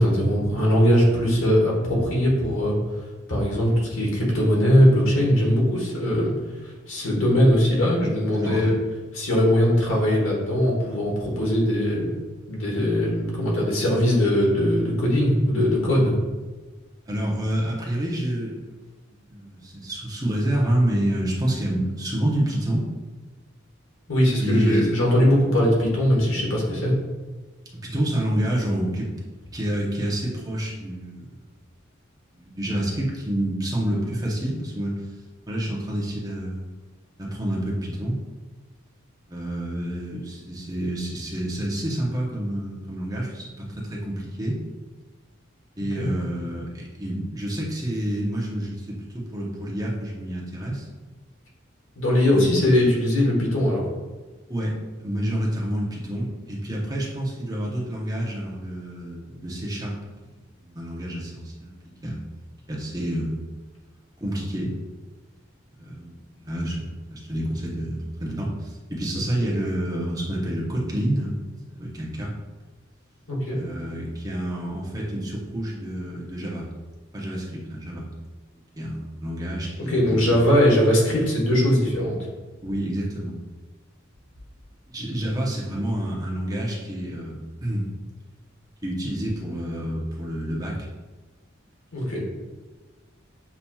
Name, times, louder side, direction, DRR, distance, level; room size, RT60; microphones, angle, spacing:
voice 1, 0.0-2.8 3.3-6.3 6.6-8.7 9.2-12.2 12.5-16.2 24.1-26.9 45.9-46.1 51.9-53.8 73.3-73.6 79.9-82.2 91.9-92.2, equal, 90° left, -3 dB, 1.3 m, -20 dB
voice 2, 8.3-8.8 17.1-18.6 19.3-22.9 24.4-24.9 27.8-29.1 29.5-31.4 32.3-35.1 35.5-36.7 37.2-38.2 39.3-44.6 45.8-50.9 52.3-52.5 54.5-60.0 60.6-61.7 62.0-62.2 62.7-63.4 64.2-64.7 65.8-71.4 71.7-72.3 73.5-76.7 77.1-78.1 78.7-80.4 82.6-83.4 84.9-87.9 88.8-90.8, right 1 dB, 20° right, -4 dB, 0.7 m, -28 dB
6.9 x 2.8 x 2.3 m, 1.2 s
head